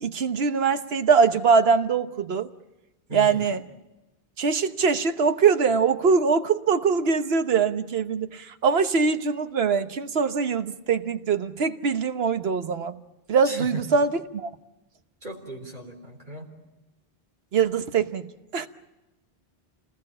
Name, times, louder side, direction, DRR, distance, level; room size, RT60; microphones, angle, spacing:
voice 1, 0.0-2.5 3.1-3.6 4.4-13.0 13.3-14.5 17.5-18.7, right 5 dB, 75° right, 9 dB, 1.3 m, -23 dB
voice 2, 3.1-3.5 13.4-13.7 15.2-16.5, right 1 dB, 50° right, 0 dB, 4.0 m, -37 dB
28.0 x 20.0 x 8.7 m, 1.0 s
omnidirectional pair, 1.0 m